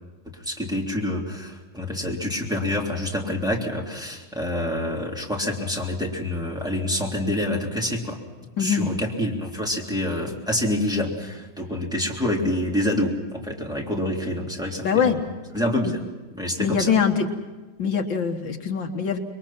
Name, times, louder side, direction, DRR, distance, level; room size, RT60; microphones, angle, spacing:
voice 1, 0.3-8.2 8.6-15.1 15.5-16.0 16.3-16.9, left 1 dB, ahead, -2 dB, 3.3 m, -27 dB
voice 2, 8.6-8.9 14.8-15.2 15.8-15.9 16.6-17.3 17.8-19.2, left 6 dB, 65° left, 5 dB, 2.1 m, -23 dB
27.5 x 22.5 x 5.9 m, 1.2 s
omnidirectional pair, 2.2 m